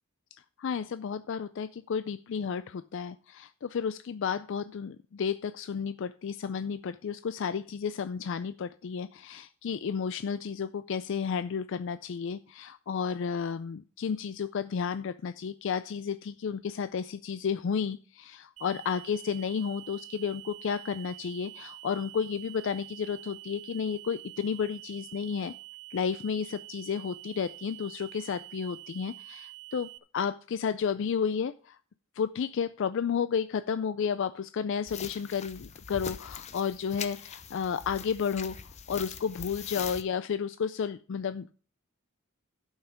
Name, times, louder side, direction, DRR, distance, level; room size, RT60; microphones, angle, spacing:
voice 1, 0.3-25.5 25.9-31.8 32.2-41.5, left 6 dB, 60° left, 14 dB, 0.4 m, -32 dB
sound 1, 18.6-30.0, right 27 dB, 85° right, 0.7 m, -47 dB
sound 2, 34.9-40.0, left 6 dB, 30° left, 0.7 m, -42 dB
12.0 x 5.6 x 5.7 m, 0.40 s
head